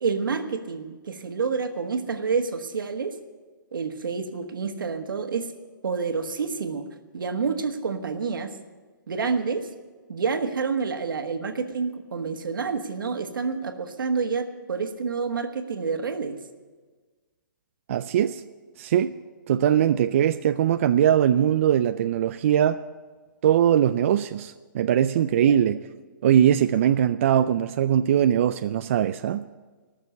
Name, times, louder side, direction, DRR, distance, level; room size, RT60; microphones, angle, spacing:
voice 1, 0.0-3.1 3.7-5.5 5.8-6.9 7.1-8.6 9.1-9.7 10.1-16.4, right 5 dB, 80° right, 7 dB, 1.4 m, -28 dB
voice 2, 17.9-18.4 18.8-19.1 19.5-22.8 23.4-25.8 26.2-29.4, right 10 dB, 40° right, 10 dB, 0.4 m, -21 dB
19.0 x 6.6 x 8.3 m, 1.4 s
hypercardioid pair, 160°, 11 cm